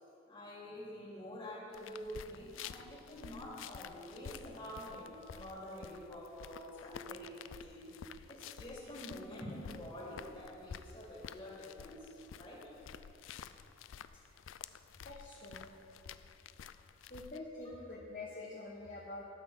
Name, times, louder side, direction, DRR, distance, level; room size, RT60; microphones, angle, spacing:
voice 1, 0.3-12.7 17.0-17.1, equal, 25° left, -5 dB, 2.9 m, -47 dB
sound 1, 1.7-17.4, left 8 dB, 90° left, 0.4 m, -51 dB
voice 2, 15.0-15.7 17.1-19.2, left 2 dB, 40° left, -4 dB, 1.1 m, -46 dB
12.0 x 6.3 x 7.3 m, 2.8 s
head